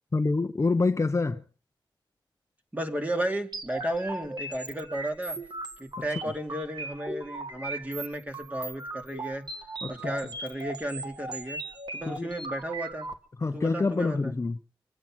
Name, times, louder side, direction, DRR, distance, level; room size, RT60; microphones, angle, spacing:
voice 1, 0.1-1.4 9.8-9.9 12.0-12.3 13.4-14.6, left 3 dB, 35° left, 0.7 m, -26 dB
voice 2, 2.7-5.4 5.8-9.4 9.9-11.6 11.9-13.1 13.5-14.4, right 1 dB, 20° right, 2.5 m, -33 dB
sound 1, 3.5-13.1, right 2 dB, 55° right, 1.8 m, -38 dB
25.5 x 8.6 x 6.0 m
wide cardioid pair, 80°, 9 cm